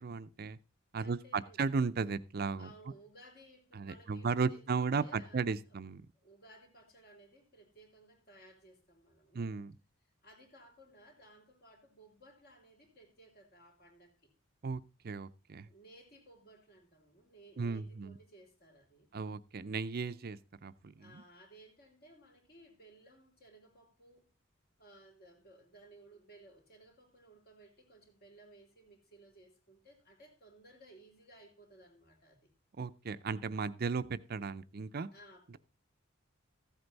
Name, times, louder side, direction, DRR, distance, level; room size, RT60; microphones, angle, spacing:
voice 1, 0.0-0.6 0.9-2.7 3.8-6.0 9.3-9.8 14.6-15.7 17.6-18.2 19.1-21.2 32.8-35.1, right 4 dB, 50° right, 0.5 m, -35 dB
voice 2, 1.0-1.6 2.6-5.4 6.1-9.5 10.2-14.3 15.6-19.1 20.6-20.7 21.0-24.3 24.8-32.5 35.1-35.6, right 1 dB, 50° left, 3.3 m, -59 dB
14.5 x 8.0 x 4.0 m
head